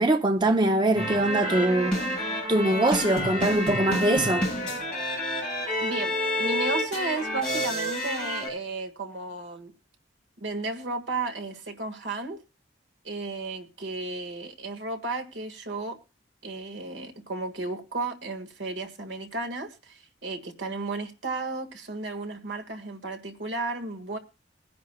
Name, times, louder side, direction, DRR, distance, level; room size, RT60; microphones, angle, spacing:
voice 1, 0.0-2.0 2.5-4.5, right 1 dB, 25° right, 0.6 m, -23 dB
sound 1, 1.0-8.5, equal, 5° left, 7.5 m, -29 dB
voice 2, 5.8-9.7 10.4-12.4 13.0-16.0 16.4-24.2, right 3 dB, 75° right, 1.7 m, -33 dB
22.0 x 10.5 x 2.3 m
head